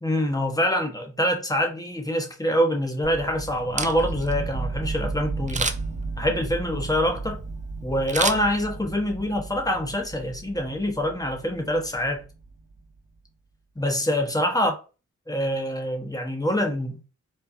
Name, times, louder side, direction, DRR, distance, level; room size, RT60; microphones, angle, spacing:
voice 1, 0.0-5.7 6.2-7.4 7.8-12.2 13.8-14.7 15.3-17.0, equal, 10° left, 1.1 m, -25 dB
sound 1, 3.0-12.8, right 3 dB, 80° right, 1.1 m, -34 dB
Camera, 3.6-4.3 5.5-6.0 8.1-9.0 9.4-9.5, right 4 dB, 25° right, 0.5 m, -29 dB
4.4 x 2.3 x 2.6 m
cardioid pair, 50°, 32 cm